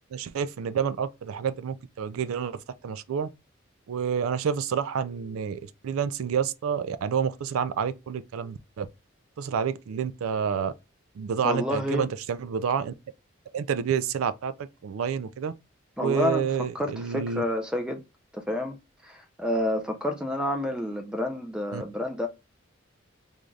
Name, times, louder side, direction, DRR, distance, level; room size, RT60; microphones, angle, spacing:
voice 1, 0.1-3.3 3.9-8.9 9.4-10.7 11.2-12.9 13.5-15.5 16.0-17.4 21.7-21.8, right 7 dB, 85° right, 0.3 m, -29 dB
voice 2, 11.4-12.1 16.0-18.0 18.3-18.8 19.0-22.3, left 1 dB, 5° right, 0.5 m, -29 dB
3.8 x 2.4 x 3.2 m
head